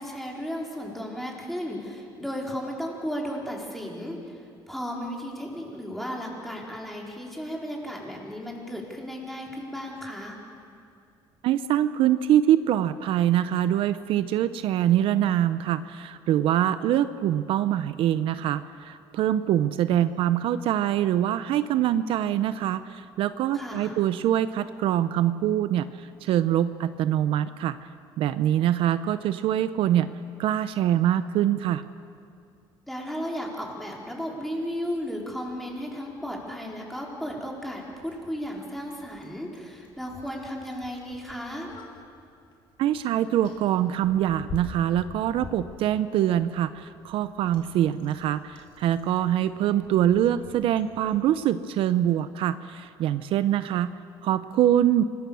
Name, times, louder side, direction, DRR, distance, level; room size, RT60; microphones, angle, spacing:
voice 1, 0.0-4.4 4.7-10.4 23.5-24.0 32.9-41.7, equal, ahead, -2 dB, 4.5 m, -34 dB
voice 2, 11.4-27.9 28.2-30.1 30.4-31.8 42.8-53.9 54.2-55.0, right 11 dB, 70° right, 12 dB, 0.7 m, -24 dB
Bicycle, 34.9-51.2, left 4 dB, 65° left, 4.2 m, -48 dB
26.0 x 20.0 x 7.1 m, 2.4 s
cardioid pair, 115°, 9 cm